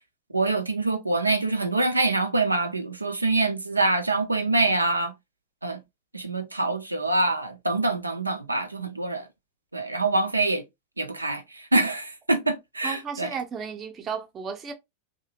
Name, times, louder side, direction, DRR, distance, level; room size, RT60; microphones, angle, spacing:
voice 1, 0.3-5.1 5.6-5.8 6.1-9.3 9.7-10.6 11.0-13.4, right 2 dB, 85° right, 0.4 m, -25 dB
voice 2, 12.8-14.7, right 6 dB, 25° right, 0.6 m, -34 dB
2.7 x 2.1 x 2.8 m
figure-of-eight pair, 90°, 0 cm